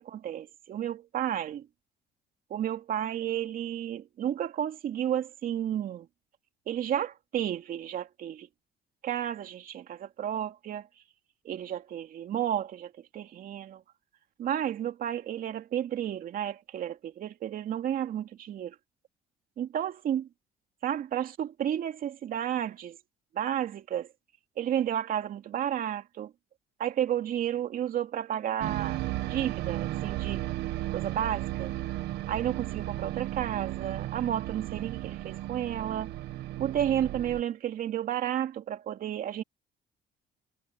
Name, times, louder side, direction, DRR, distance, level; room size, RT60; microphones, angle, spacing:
voice 1, 0.0-1.7 2.5-6.1 6.7-8.5 9.0-10.9 11.4-13.8 14.4-18.8 19.6-20.3 20.8-23.0 23.3-24.1 24.6-26.3 26.8-29.0 29.3-30.4 30.9-31.7 32.3-36.1 36.6-39.4, right 10 dB, 60° right, 2.6 m, -32 dB
sound 1, 28.6-37.4, right 15 dB, 80° right, 1.5 m, -34 dB
cardioid pair, 110°, 17 cm